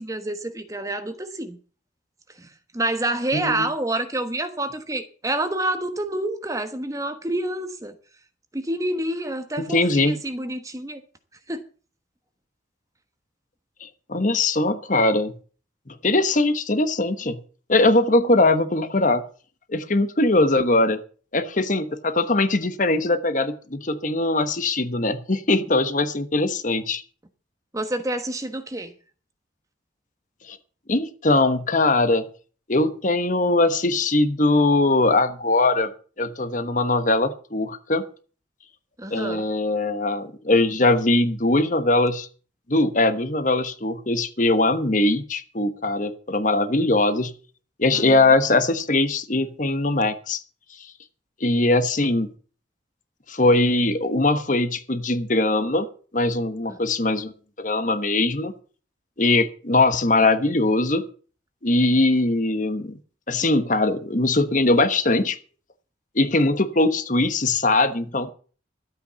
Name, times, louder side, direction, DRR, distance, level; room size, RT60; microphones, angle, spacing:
voice 1, 0.0-1.6 2.4-2.5 2.7-7.9 8.5-11.0 11.5-11.6 27.7-28.9 39.0-39.4 47.9-48.3, right 1 dB, 15° right, 1.2 m, -28 dB
voice 2, 3.3-3.7 9.7-10.2 13.8-15.3 16.0-17.4 17.7-19.2 19.7-21.0 21.3-27.0 30.5-30.6 30.9-32.2 32.7-35.9 36.2-38.1 39.1-42.3 42.7-47.3 47.8-50.4 51.4-52.3 53.3-55.9 56.1-57.3 57.6-58.5 59.2-61.1 61.6-63.0 63.3-65.4 66.1-68.3, left 2 dB, 40° left, 1.2 m, -21 dB
12.5 x 8.6 x 6.9 m
head